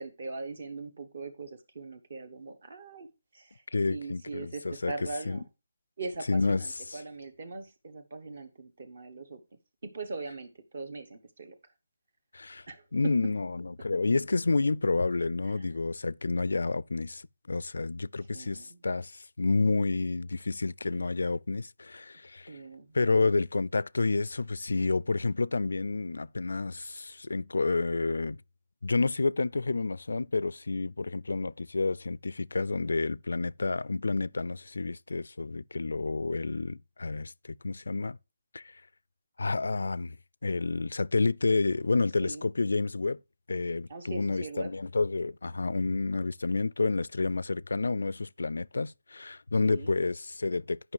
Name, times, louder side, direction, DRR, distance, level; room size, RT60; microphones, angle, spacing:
voice 1, 0.0-3.1 3.3-5.5 6.0-9.4 9.8-11.5 12.7-13.1 15.5-15.6 18.3-18.8 22.5-22.9 42.2-42.4 43.9-44.7 49.6-49.9, right 3 dB, 50° right, 1.2 m, -40 dB
voice 2, 3.7-4.9 5.3-5.4 6.3-6.6 6.9-7.0 12.3-12.7 12.9-22.5 22.9-28.4 28.8-38.2 38.5-38.8 39.4-40.2 40.4-43.2 43.5-50.9, left 3 dB, 90° left, 0.4 m, -29 dB
9.6 x 5.6 x 4.6 m
hypercardioid pair, 175°, 0 cm